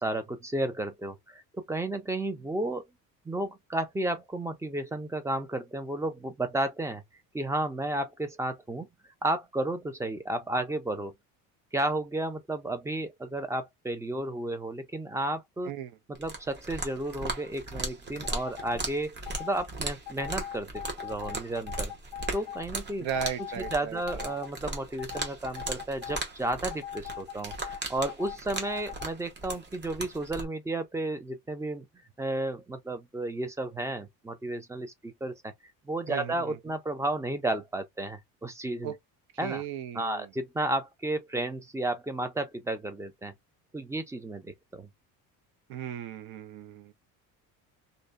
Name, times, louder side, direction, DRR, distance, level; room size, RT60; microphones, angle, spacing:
voice 1, 0.0-2.8 3.3-7.0 7.3-8.9 9.2-11.1 11.7-15.7 16.2-21.9 22.3-23.1 23.7-27.5 27.9-31.9 32.2-35.5 35.9-38.9 39.4-39.6 40.0-43.3 43.7-44.9, right 1 dB, 10° right, 0.3 m, -32 dB
voice 2, 15.6-16.0 23.0-24.3 36.1-36.6 38.8-39.0 39.4-40.3 45.7-46.9, right 8 dB, 75° right, 0.7 m, -36 dB
sound 1, 16.1-30.5, right 2 dB, 30° right, 0.9 m, -38 dB
sound 2, 18.2-18.8 19.3-19.6 20.1-22.7 23.1-24.5 25.0-26.2 26.7-29.1, left 10 dB, 85° left, 0.5 m, -41 dB
2.6 x 2.1 x 2.3 m
cardioid pair, 125°, 37 cm